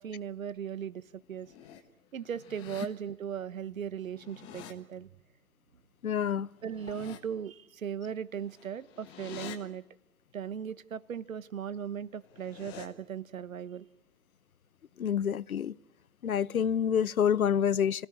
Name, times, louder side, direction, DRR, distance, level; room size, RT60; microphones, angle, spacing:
voice 1, 0.0-1.5 2.1-5.1 6.6-9.8 10.3-13.9, right 8 dB, 60° right, 1.1 m, -38 dB
sound 1, 1.2-1.8 2.2-2.9 4.0-4.7 6.5-7.2 8.4-9.6 12.1-12.9, left 9 dB, 10° left, 0.8 m, -48 dB
voice 2, 6.0-6.5 15.0-15.7 16.2-18.1, left 8 dB, 70° left, 0.8 m, -27 dB
25.5 x 17.0 x 9.8 m
hypercardioid pair, 145°, 45 cm